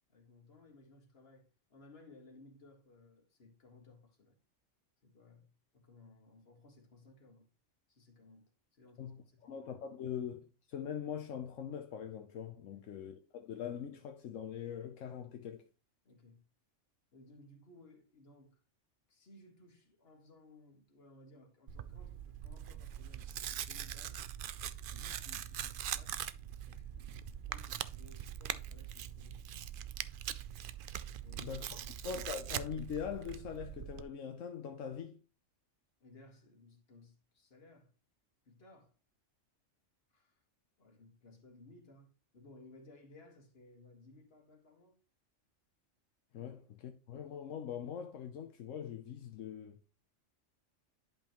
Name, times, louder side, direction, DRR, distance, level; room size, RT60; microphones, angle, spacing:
voice 1, 0.1-4.4 5.0-7.5 7.9-9.6 12.7-12.8 16.1-16.4 17.1-18.6 19.1-24.2 24.9-26.2 26.6-29.6 31.2-32.1 36.0-37.9 38.5-38.9 40.1-40.4 40.8-45.0, left 2 dB, 50° left, 1.9 m, -60 dB
voice 2, 9.0-15.7 31.4-31.8 32.0-35.2 46.3-49.8, left 8 dB, 80° left, 1.1 m, -42 dB
Tearing, 21.7-34.0, right 10 dB, 60° right, 0.6 m, -42 dB
11.0 x 5.4 x 3.0 m
omnidirectional pair, 1.3 m